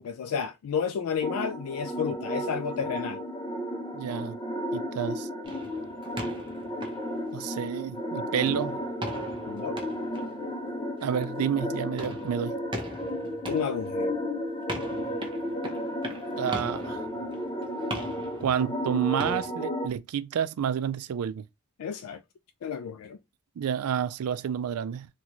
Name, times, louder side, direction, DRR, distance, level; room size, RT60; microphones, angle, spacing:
voice 1, 0.0-3.2 9.4-9.8 13.5-14.2 21.8-22.2 22.6-23.2, left 7 dB, 80° left, 0.3 m, -31 dB
sound 1, 1.2-19.9, equal, 20° left, 0.5 m, -33 dB
voice 2, 3.9-4.4 4.7-5.3 7.3-8.8 11.0-12.6 16.4-17.0 18.4-21.4 23.6-25.1, right 8 dB, 90° right, 0.3 m, -29 dB
Basket ball on a concrete floor, 5.4-8.0 8.3-19.5, right 1 dB, 20° right, 0.7 m, -41 dB
4.0 x 2.3 x 3.0 m
head